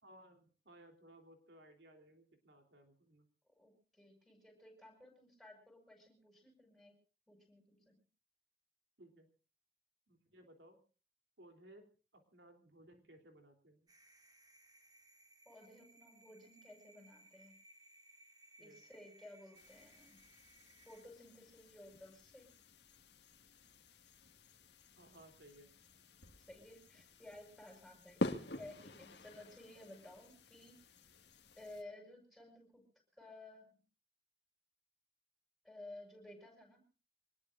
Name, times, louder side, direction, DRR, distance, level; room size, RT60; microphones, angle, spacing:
voice 1, 0.0-3.3 9.0-9.3 10.1-10.8 11.4-11.9 12.1-13.9 18.6-18.8 24.9-25.7, right 1 dB, 75° right, 5 dB, 3.3 m, -61 dB
voice 2, 3.5-6.9 7.3-7.9 15.4-17.5 18.6-20.2 20.8-22.5 26.5-30.8 31.6-32.9 33.1-33.7 35.6-36.8, left 1 dB, ahead, 3 dB, 6.7 m, -56 dB
sound 1, 13.9-21.0, right 2 dB, 25° right, 3.1 m, -64 dB
sound 2, 19.5-31.8, left 1 dB, 70° left, 2.0 m, -48 dB
26.0 x 20.0 x 2.6 m, 0.36 s
head